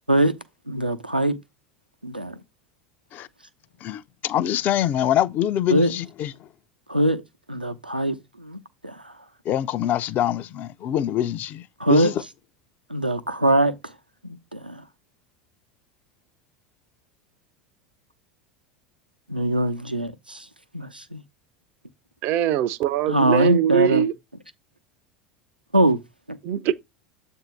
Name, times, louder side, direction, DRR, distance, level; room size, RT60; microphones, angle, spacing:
voice 1, 0.7-1.4 2.0-2.4 5.7-5.9 6.9-7.2 7.5-9.0 11.8-12.1 12.9-13.7 14.2-14.8 19.3-20.4 20.7-21.2 23.1-24.0 25.7-26.0, right 1 dB, 90° right, 0.7 m, -22 dB
voice 2, 3.8-6.3 9.5-12.2, left 11 dB, 40° left, 0.5 m, -24 dB
voice 3, 22.2-24.1 26.4-26.7, right 11 dB, 45° right, 0.5 m, -22 dB
7.8 x 2.7 x 6.0 m
figure-of-eight pair, 75°, 5 cm